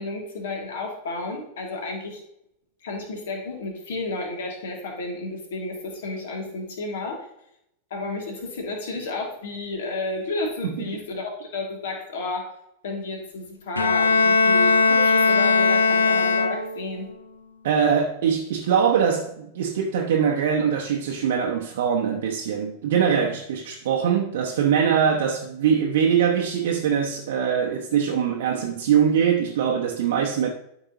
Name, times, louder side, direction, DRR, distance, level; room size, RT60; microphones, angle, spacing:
voice 1, 0.0-2.2 2.8-7.2 7.9-12.4 12.8-17.1, left 2 dB, 60° left, 2.3 m, -32 dB
Bowed string instrument, 13.8-17.0, left 4 dB, 75° left, 0.7 m, -19 dB
voice 2, 17.6-30.5, right 7 dB, 55° right, 0.9 m, -22 dB
12.0 x 5.8 x 2.9 m
figure-of-eight pair, 90°, 0 cm